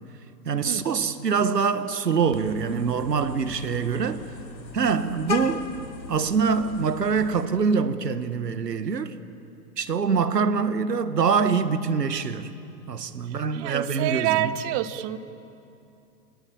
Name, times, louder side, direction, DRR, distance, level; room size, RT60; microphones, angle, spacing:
voice 1, 0.4-4.2 4.7-5.7 6.1-9.1 9.8-12.5 12.9-14.5, right 5 dB, 75° right, 1.5 m, -24 dB
Vehicle horn car horn honking, 2.3-7.5, left 4 dB, 85° left, 1.2 m, -37 dB
voice 2, 13.2-15.2, right 13 dB, 30° right, 1.0 m, -28 dB
27.0 x 20.5 x 8.8 m
figure-of-eight pair, 100°, 49 cm